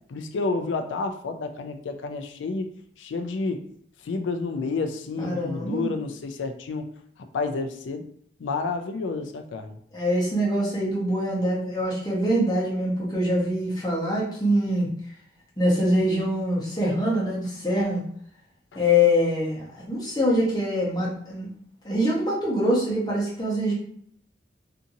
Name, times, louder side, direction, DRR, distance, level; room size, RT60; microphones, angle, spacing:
voice 1, 0.1-2.7 3.0-3.6 4.0-6.9 7.3-8.1 8.4-9.8 18.7-18.8, left 3 dB, 85° left, 7 dB, 0.4 m, -30 dB
voice 2, 5.2-5.9 9.9-14.9 15.6-18.0 18.8-21.5 21.8-23.7, left 1 dB, 20° left, -5 dB, 0.8 m, -24 dB
2.7 x 2.5 x 2.6 m, 0.64 s
head